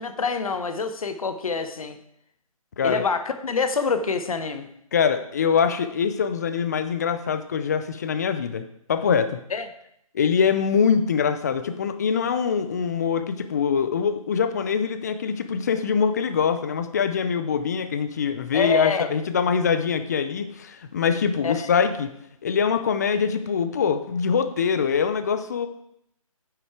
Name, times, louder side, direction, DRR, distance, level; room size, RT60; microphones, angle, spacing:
voice 1, 0.0-2.0 2.8-4.7 9.5-9.6 18.5-19.0 21.4-21.7, left 4 dB, 70° left, 8 dB, 1.0 m, -25 dB
voice 2, 4.9-9.4 10.1-22.1 22.4-25.7, left 6 dB, 30° left, 10 dB, 0.5 m, -23 dB
9.6 x 6.1 x 4.7 m, 0.75 s
hypercardioid pair, 165°, 19 cm